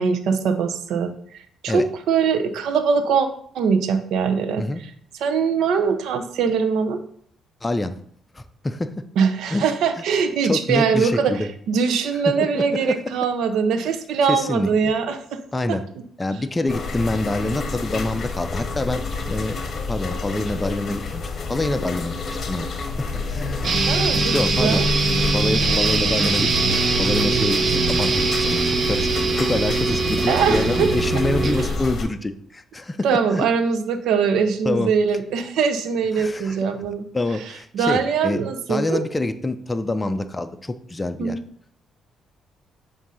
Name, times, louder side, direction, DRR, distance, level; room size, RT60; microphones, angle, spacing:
voice 1, 0.0-3.3 3.5-4.9 5.2-7.0 9.2-15.4 23.8-24.9 30.3-30.9 31.5-31.7 33.0-37.0 37.7-39.0 41.2-41.4, right 6 dB, 80° right, 8 dB, 0.7 m, -22 dB
voice 2, 7.6-8.0 8.3-9.0 9.5-9.7 10.4-11.5 12.6-13.0 14.3-14.9 15.5-15.8 16.2-19.6 19.9-21.2 21.5-22.7 23.3-24.0 24.3-24.8 25.3-27.6 27.9-33.1 33.3-33.4 34.6-34.9 36.2-36.6 37.1-38.4 38.7-41.4, left 2 dB, 15° left, 8 dB, 0.5 m, -26 dB
sound 1, 16.7-32.1, left 3 dB, 50° left, 0.9 m, -29 dB
sound 2, 23.6-31.6, right 4 dB, 50° right, 0.9 m, -22 dB
7.4 x 2.7 x 5.5 m, 0.63 s
cardioid pair, 90°, 0 cm